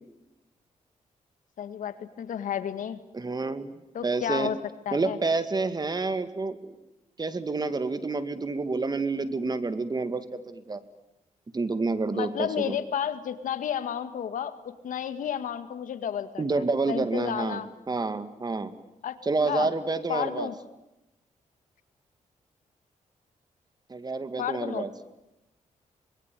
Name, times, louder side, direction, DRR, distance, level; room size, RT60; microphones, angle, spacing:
voice 1, 1.6-3.0 3.9-4.6 4.9-5.2 12.1-17.7 19.0-19.2 19.5-19.7 20.1-20.5 24.4-24.9, left 9 dB, 80° left, 11 dB, 2.0 m, -32 dB
voice 2, 3.1-3.7 4.0-4.5 4.9-6.7 7.2-10.8 11.5-12.8 16.4-18.7 19.2-20.5 23.9-24.9, right 3 dB, 30° right, 12 dB, 2.2 m, -29 dB
25.5 x 21.5 x 9.2 m, 0.93 s
cardioid pair, 85°, 13 cm